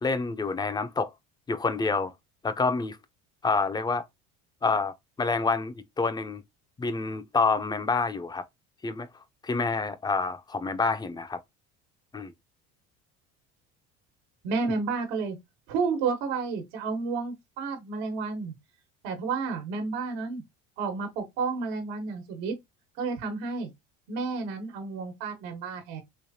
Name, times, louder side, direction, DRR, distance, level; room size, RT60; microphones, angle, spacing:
voice 1, 0.0-1.1 1.5-2.1 2.4-3.0 3.4-4.0 4.6-6.4 6.8-8.4 8.8-9.1 9.4-11.4 12.1-12.3, left 4 dB, 15° left, 0.4 m, -27 dB
voice 2, 14.4-15.4 15.7-18.5 19.0-20.4 20.8-22.6 23.0-23.7 24.1-26.0, right 4 dB, 85° right, 1.3 m, -31 dB
3.3 x 3.1 x 2.7 m
cardioid pair, 115°, 30 cm